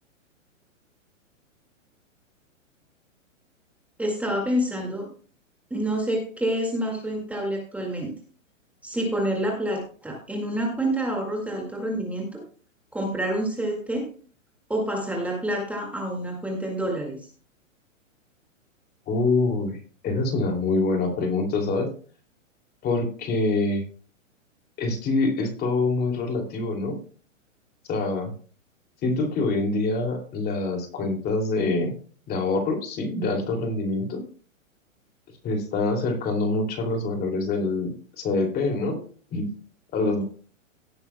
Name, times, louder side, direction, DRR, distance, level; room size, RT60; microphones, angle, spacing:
voice 1, 4.0-5.1 5.7-8.1 8.8-12.4 12.9-14.1 14.7-17.3, right 1 dB, 5° right, -1 dB, 2.0 m, -28 dB
voice 2, 19.1-21.9 22.8-23.8 24.8-26.9 27.9-28.3 29.0-31.9 32.3-34.2 35.4-39.0 39.3-39.5 39.9-40.2, left 3 dB, 25° left, 3 dB, 2.7 m, -25 dB
17.5 x 8.9 x 2.2 m, 0.41 s
hypercardioid pair, 130°, 40 cm